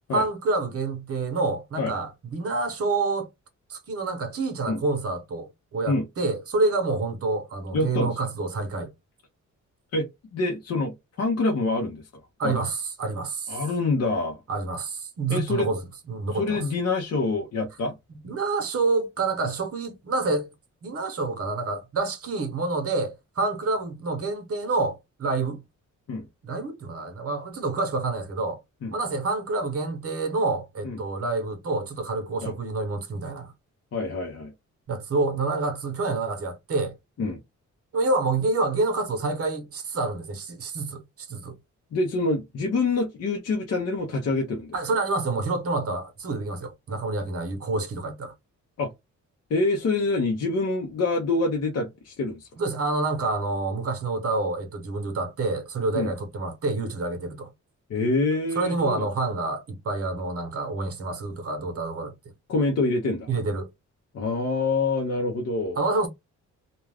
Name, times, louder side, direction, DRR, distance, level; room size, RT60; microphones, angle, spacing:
voice 1, 0.1-3.3 3.7-8.9 12.4-13.6 14.5-16.6 18.2-20.5 20.8-25.6 26.4-28.6 28.9-33.5 34.9-37.0 37.9-41.6 44.7-48.3 52.6-57.5 58.6-62.1 63.3-63.7 65.8-66.1, right 3 dB, 50° right, 0.8 m, -28 dB
voice 2, 7.7-8.2 9.9-12.0 12.4-12.6 13.5-14.4 15.3-15.7 16.3-17.9 26.1-26.3 28.8-29.0 30.8-31.0 32.4-32.5 33.9-34.5 37.2-37.4 41.9-44.8 48.8-48.9 49.5-52.5 55.9-56.1 57.9-59.1 62.5-63.3 64.1-65.8, left 3 dB, 55° left, 0.7 m, -26 dB
2.4 x 2.2 x 3.3 m
cardioid pair, 125°, 30 cm